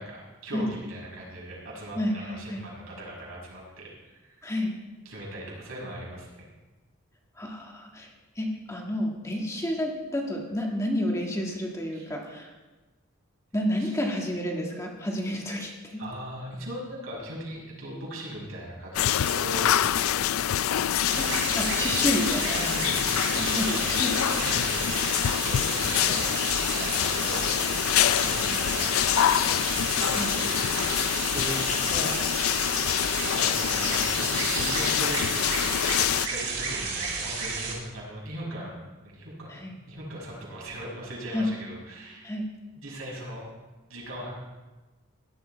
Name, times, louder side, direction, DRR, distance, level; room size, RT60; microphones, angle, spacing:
voice 1, 0.0-4.4 5.0-6.5 11.9-12.1 13.7-13.9 16.0-20.2 22.0-22.1 22.5-23.9 24.3-26.4 26.7-28.9 29.4-32.7 33.4-38.8 39.0-42.3 42.7-43.5 43.9-44.3, right 1 dB, 80° right, -4 dB, 5.9 m, -39 dB
voice 2, 1.9-2.6 4.4-4.8 7.4-8.1 8.4-12.5 13.5-16.0 21.0-22.6 23.3-24.2 30.1-30.4 39.5-39.7 41.3-41.5 42.2-42.5, left 1 dB, 15° left, 0 dB, 1.7 m, -30 dB
sound 1, 18.9-36.3, left 11 dB, 90° left, 0.4 m, -26 dB
sound 2, 21.0-37.7, right 4 dB, 50° right, 3.5 m, -32 dB
17.0 x 11.5 x 4.5 m, 1.2 s
head